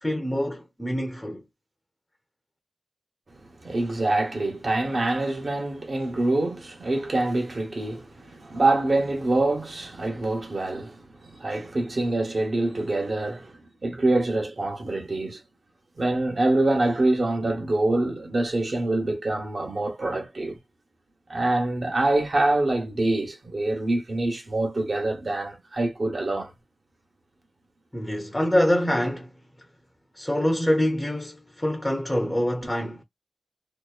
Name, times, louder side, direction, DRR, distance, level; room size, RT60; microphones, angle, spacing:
voice 1, 0.0-1.5 27.9-29.3 30.1-33.0, left 1 dB, 15° left, 0.6 m, -25 dB
voice 2, 3.6-15.4 16.0-20.6 21.3-26.5, right 2 dB, 60° right, 0.9 m, -25 dB
2.8 x 2.1 x 2.3 m
wide cardioid pair, 65°, 0 cm